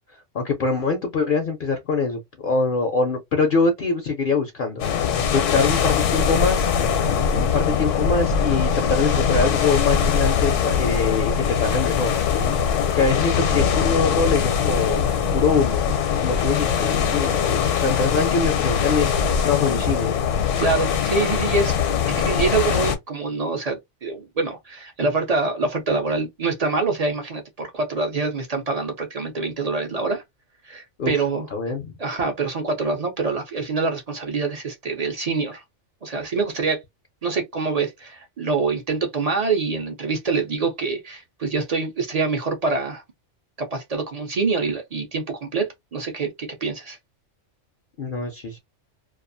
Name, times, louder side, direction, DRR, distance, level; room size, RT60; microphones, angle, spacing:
voice 1, 0.3-6.7 7.3-12.1 12.9-15.8 16.2-20.1 31.0-31.2 31.5-31.9 48.0-48.6, left 4 dB, 55° left, 0.6 m, -24 dB
sound 1, 4.8-23.0, left 7 dB, 75° left, 1.0 m, -22 dB
voice 2, 20.6-21.8 22.1-30.2 30.6-31.5 32.0-35.6 36.0-36.8 37.2-43.0 43.6-47.0, right 4 dB, 50° right, 0.4 m, -25 dB
2.5 x 2.3 x 2.5 m
omnidirectional pair, 1.3 m